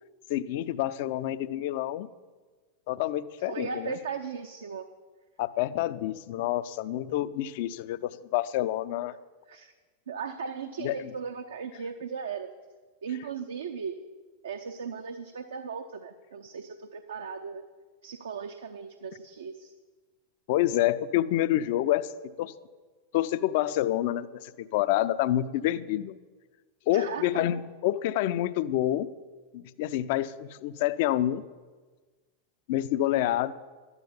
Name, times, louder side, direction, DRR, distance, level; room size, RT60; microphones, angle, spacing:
voice 1, 0.3-2.1 2.9-4.0 5.4-9.1 10.8-11.1 20.5-22.1 22.4-22.5 23.1-26.2 26.9-29.1 29.5-31.4 32.7-33.5, left 13 dB, 50° left, 15 dB, 0.5 m, -28 dB
voice 2, 3.4-4.9 9.5-9.7 10.1-12.5 13.0-14.0 14.4-17.6 18.0-19.7 26.9-27.5, right 6 dB, 65° right, 6 dB, 0.7 m, -37 dB
12.0 x 9.7 x 7.1 m, 1.4 s
figure-of-eight pair, 90°, 0 cm